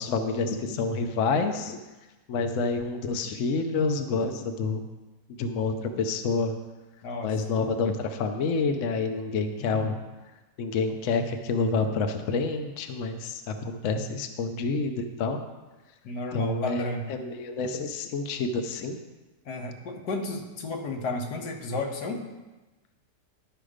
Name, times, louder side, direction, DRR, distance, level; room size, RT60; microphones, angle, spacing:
voice 1, 0.0-1.8 2.3-4.8 5.3-6.5 7.2-9.9 10.6-15.4 16.3-19.0, left 4 dB, 60° left, 6 dB, 1.0 m, -28 dB
voice 2, 7.0-7.4 9.6-10.0 16.0-17.1 19.5-22.2, left 2 dB, 85° left, 3 dB, 1.7 m, -33 dB
11.0 x 5.7 x 5.0 m, 1.1 s
omnidirectional pair, 1.7 m